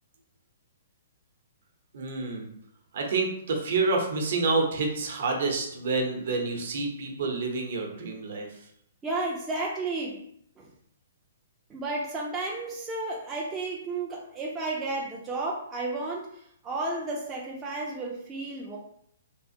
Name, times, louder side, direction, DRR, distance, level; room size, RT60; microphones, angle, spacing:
voice 1, 1.9-2.5 2.9-8.7, right 3 dB, 55° right, 1 dB, 0.8 m, -28 dB
voice 2, 9.0-10.2 10.6-10.7 11.7-18.8, right 2 dB, 10° right, -3 dB, 0.3 m, -32 dB
3.5 x 2.4 x 2.7 m, 0.70 s
hypercardioid pair, 170°, 0 cm